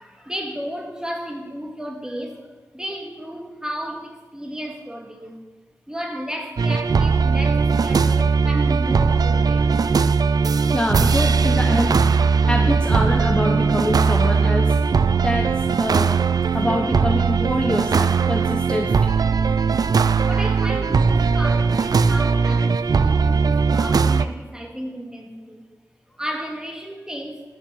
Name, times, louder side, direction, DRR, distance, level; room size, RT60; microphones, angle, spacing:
voice 1, 0.0-2.5 2.7-5.4 5.9-9.7 19.8-25.7 26.2-27.4, equal, 10° right, 2 dB, 1.9 m, -33 dB
sound 1, 6.6-24.3, right 5 dB, 70° right, 0.4 m, -19 dB
voice 2, 10.7-11.9 12.4-14.8 15.2-15.5 15.8-16.1 16.5-18.9, left 1 dB, 15° left, 1 dB, 1.0 m, -25 dB
9.9 x 6.7 x 6.4 m, 1.2 s
cardioid pair, 55°, 7 cm